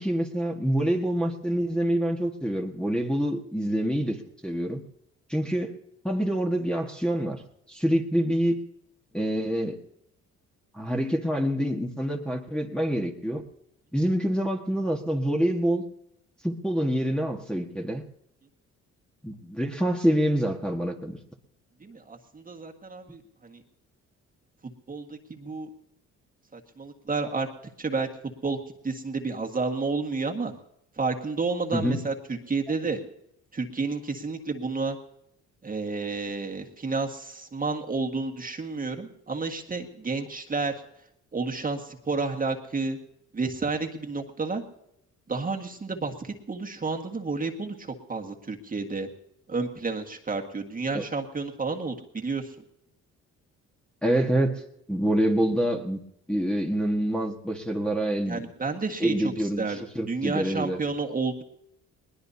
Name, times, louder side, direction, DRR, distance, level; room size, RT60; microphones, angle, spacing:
voice 1, 0.0-4.8 5.3-5.7 6.0-7.4 7.7-8.6 9.1-9.8 10.7-13.4 13.9-15.8 16.4-18.0 19.2-21.2 31.7-32.0 50.9-51.1 54.0-54.6 54.9-56.0 56.3-58.4 59.0-60.8, equal, 5° left, -1 dB, 1.6 m, -26 dB
voice 2, 21.8-23.6 24.9-25.7 26.5-27.5 27.8-28.1 28.4-28.6 28.8-30.5 31.0-33.0 33.5-35.0 35.6-40.7 41.3-43.0 43.3-44.6 45.3-49.1 49.5-52.5 58.3-59.8 60.0-61.4, right 4 dB, 30° right, 2 dB, 1.7 m, -31 dB
20.5 x 20.0 x 2.8 m, 0.77 s
cardioid pair, 90°, 30 cm